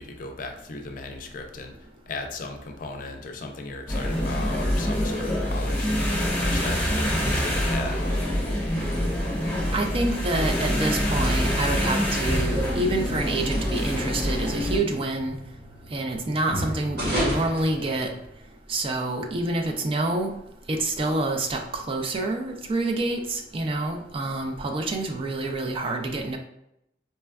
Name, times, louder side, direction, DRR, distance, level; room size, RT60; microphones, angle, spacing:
voice 1, 0.0-1.7 2.1-6.1 6.4-8.0, left 3 dB, 50° left, 4 dB, 0.4 m, -36 dB
sound 1, 3.9-14.8, equal, 15° left, 0.9 m, -25 dB
sound 2, 8.0-18.5, equal, 65° right, 1.0 m, -36 dB
voice 2, 9.7-15.3 15.9-18.1 18.7-20.3 20.7-26.4, right 2 dB, 30° right, 3 dB, 0.4 m, -27 dB
4.1 x 2.2 x 2.2 m, 0.81 s
head